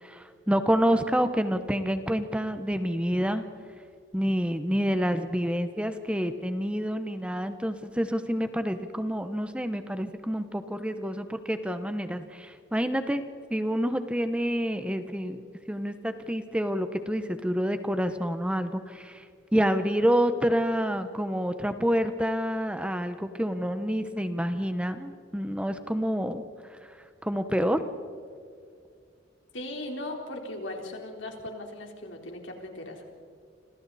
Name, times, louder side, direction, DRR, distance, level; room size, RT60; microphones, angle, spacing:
voice 1, 0.0-3.5 4.1-13.2 13.5-19.2 19.5-26.4 26.9-27.0 27.2-27.8, equal, 5° right, 9 dB, 0.9 m, -28 dB
voice 2, 29.5-33.0, left 1 dB, 75° left, 2 dB, 3.9 m, -38 dB
29.5 x 27.0 x 4.2 m, 2.3 s
head